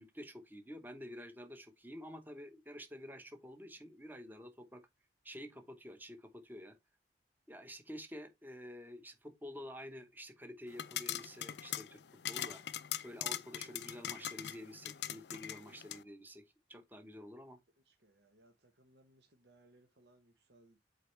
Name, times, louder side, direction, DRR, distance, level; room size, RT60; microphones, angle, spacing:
voice 1, 0.0-4.8 5.2-6.8 7.5-12.0 12.3-12.6 13.0-16.4 16.7-17.6, equal, 10° right, 1.0 m, -49 dB
sound 1, 10.7-16.0, left 11 dB, 70° left, 0.5 m, -42 dB
voice 2, 17.8-20.8, right 1 dB, 70° right, 1.1 m, -67 dB
8.3 x 4.3 x 3.3 m
head